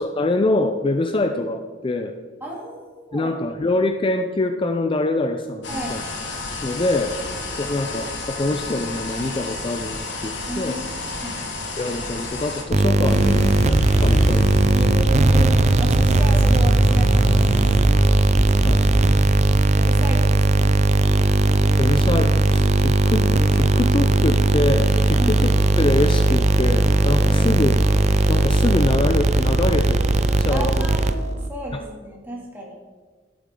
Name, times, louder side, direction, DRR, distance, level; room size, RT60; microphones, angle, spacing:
voice 1, 0.0-2.2 3.1-6.0 6.6-7.2 7.5-10.8 11.8-14.5 14.8-15.0 18.6-18.9 21.8-25.5 25.8-27.8 28.3-30.0 30.4-30.8, left 2 dB, 25° left, 7 dB, 0.4 m, -24 dB
voice 2, 2.4-3.3 5.7-6.0 10.5-11.4 14.7-18.0 18.5-18.8 19.7-20.7 25.1-25.4 27.3-27.5 30.5-32.7, right 1 dB, 10° right, -3 dB, 2.4 m, -33 dB
sound 1, 5.6-12.6, left 3 dB, 65° left, 1.7 m, -31 dB
sound 2, 12.7-31.5, right 2 dB, 35° right, 0.5 m, -18 dB
sound 3, 13.0-19.5, equal, 85° left, 2.5 m, -24 dB
12.0 x 8.7 x 3.7 m, 1.4 s
head